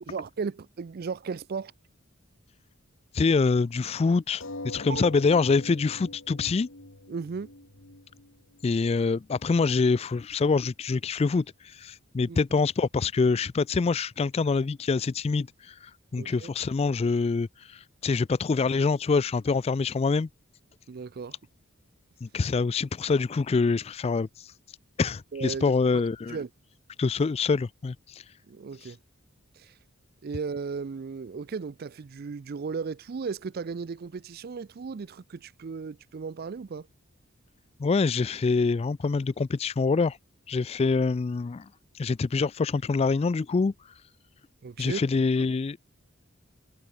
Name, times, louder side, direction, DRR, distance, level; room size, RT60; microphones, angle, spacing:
voice 1, 0.0-1.7 4.9-5.1 7.1-7.5 12.3-12.4 16.2-16.5 20.9-21.4 25.3-25.6 26.3-26.5 28.5-29.0 29.5-29.8 30.2-36.9 44.6-45.1 45.4-45.5, right 5 dB, 45° right, 0.4 m, -35 dB
voice 2, 3.1-6.7 8.6-20.3 22.2-24.5 25.0-26.4 27.0-28.2 28.8-28.9 37.8-40.2 40.5-41.7 42.0-43.7 44.8-45.8, left 4 dB, 30° left, 0.3 m, -25 dB
sound 1, 4.4-9.4 10.2-10.3 10.6-10.7, left 2 dB, 70° left, 3.6 m, -43 dB
head